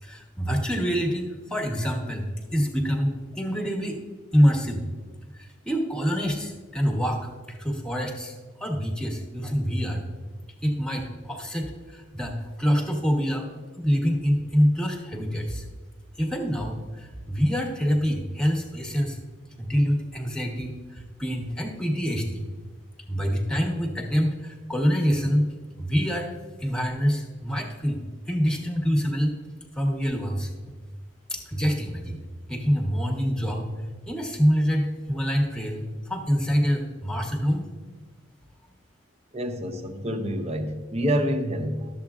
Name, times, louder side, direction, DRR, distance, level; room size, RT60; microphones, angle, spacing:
voice 1, 0.0-4.0 4.3-4.8 5.3-10.0 10.6-13.5 13.8-15.7 16.2-19.2 19.6-22.5 23.1-26.3 26.6-29.4 29.7-30.5 31.3-32.2 32.5-33.7 34.1-37.7, equal, 5° left, 2 dB, 1.0 m, -26 dB
voice 2, 39.3-42.0, equal, 30° right, 6 dB, 0.7 m, -27 dB
12.0 x 7.3 x 2.4 m, 1.4 s
head